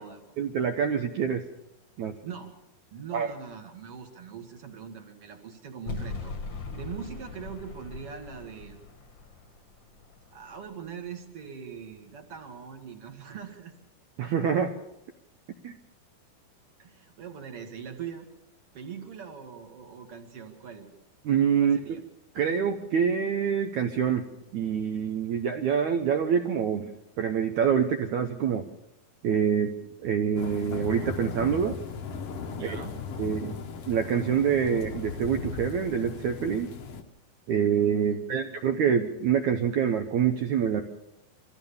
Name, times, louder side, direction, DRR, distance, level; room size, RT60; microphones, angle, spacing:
voice 1, 0.4-1.4 2.0-2.2 3.1-3.3 14.2-14.7 15.6-15.8 21.2-21.8 22.4-24.3 24.5-26.9 27.2-28.7 29.2-29.7 30.0-31.8 32.6-32.8 33.2-33.6 33.9-36.7 37.5-40.8, right 7 dB, 75° right, 6 dB, 1.8 m, -26 dB
voice 2, 2.2-2.5 2.9-6.3 6.7-8.8 10.3-13.7 16.8-18.3 18.7-20.9 21.6-22.0 32.5-33.0 38.1-38.6, right 7 dB, 45° right, 5 dB, 2.3 m, -42 dB
sound 1, 5.9-11.0, left 3 dB, 45° left, 1.6 m, -40 dB
sound 2, 30.4-37.0, left 5 dB, 60° left, 1.6 m, -37 dB
24.5 x 15.0 x 7.1 m, 0.90 s
omnidirectional pair, 4.6 m